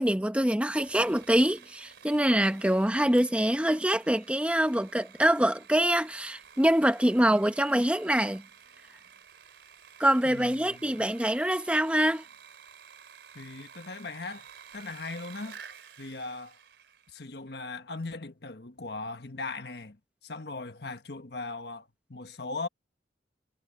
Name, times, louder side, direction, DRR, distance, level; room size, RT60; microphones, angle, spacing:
voice 1, 0.0-8.4 10.0-12.2, right 1 dB, 5° right, 0.8 m, -25 dB
Sawing, 0.8-17.2, right 7 dB, 75° right, 3.5 m, -52 dB
voice 2, 10.2-11.0 13.3-14.5 14.7-15.6 16.0-16.6 17.1-22.7, left 3 dB, 60° left, 1.4 m, -39 dB
head